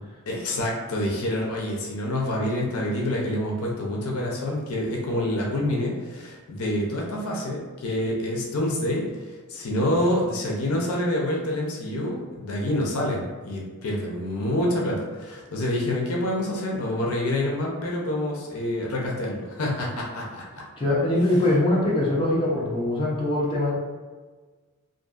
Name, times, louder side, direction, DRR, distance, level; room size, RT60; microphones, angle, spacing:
voice 1, 0.3-20.6, left 1 dB, 65° left, -2 dB, 0.5 m, -27 dB
voice 2, 20.8-23.7, left 1 dB, 25° left, -5 dB, 0.6 m, -22 dB
2.6 x 2.6 x 2.3 m, 1.4 s
head